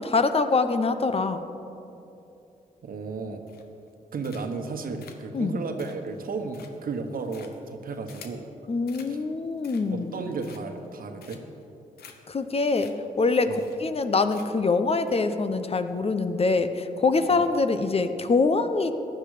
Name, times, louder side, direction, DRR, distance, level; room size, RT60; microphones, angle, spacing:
voice 1, 0.0-1.4 5.3-5.6 8.7-10.1 12.3-18.9, left 3 dB, 40° left, 9 dB, 0.9 m, -24 dB
voice 2, 2.8-3.4 4.1-8.5 9.1-9.2 9.9-11.4 13.5-13.6 17.3-17.4, right 4 dB, 65° right, 6 dB, 1.3 m, -34 dB
sound 1, 3.5-3.9 4.2-4.7 5.0-8.5 8.9-9.1 9.5-10.0 10.4-10.9 11.2-11.6 12.0-12.1 12.4-12.5 12.7-12.9 13.2-13.3 13.5-14.0 14.3-14.7 15.1-15.2, left 7 dB, 85° left, 1.0 m, -50 dB
15.0 x 10.5 x 5.0 m, 2.8 s
cardioid pair, 65°, 16 cm